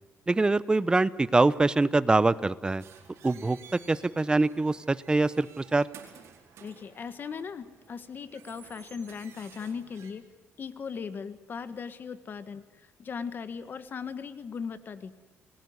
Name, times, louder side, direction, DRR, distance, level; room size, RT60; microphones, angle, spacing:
voice 1, 0.3-2.8 3.2-3.6 3.9-5.9, right 3 dB, 20° right, 18 dB, 0.8 m, -24 dB
sound 1, 2.8-10.1, right 8 dB, 75° right, 4.4 m, -53 dB
voice 2, 6.6-10.2 10.6-15.1, left 6 dB, 45° left, 12 dB, 1.6 m, -38 dB
28.5 x 20.5 x 9.7 m, 1.1 s
cardioid pair, 110°, 5 cm